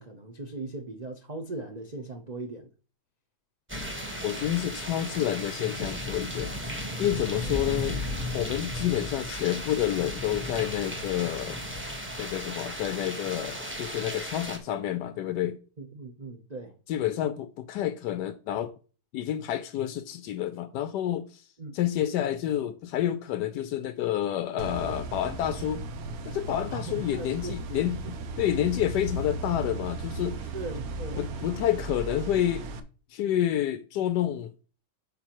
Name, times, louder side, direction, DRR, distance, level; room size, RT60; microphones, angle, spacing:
voice 1, 0.0-2.7 7.3-7.7 15.8-16.7 21.6-21.8 26.7-27.6 28.0-28.1 30.5-31.2, right 2 dB, 85° right, 0.3 m, -39 dB
sound 1, 3.7-14.6, left 1 dB, 10° right, 0.8 m, -35 dB
voice 2, 4.2-8.0 8.3-11.6 12.2-15.6 16.9-18.7 19.1-21.4 21.7-25.9 26.2-30.4 31.2-32.7 33.1-34.5, left 11 dB, 75° left, 1.0 m, -29 dB
sound 2, 24.6-32.8, right 3 dB, 60° right, 1.0 m, -36 dB
9.0 x 5.6 x 3.0 m
omnidirectional pair, 2.3 m